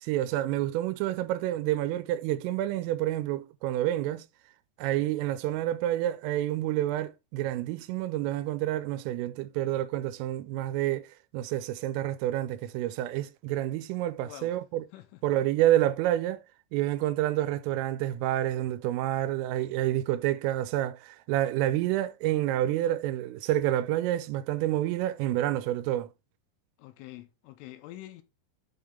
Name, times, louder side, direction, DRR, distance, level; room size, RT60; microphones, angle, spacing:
voice 1, 0.0-4.3 4.8-11.1 11.3-14.8 15.2-16.4 16.7-26.1, right 13 dB, 90° right, 3.2 m, -28 dB
voice 2, 14.2-14.6 14.9-15.2 26.8-28.2, left 15 dB, 85° left, 3.2 m, -46 dB
8.3 x 3.7 x 3.4 m
omnidirectional pair, 5.7 m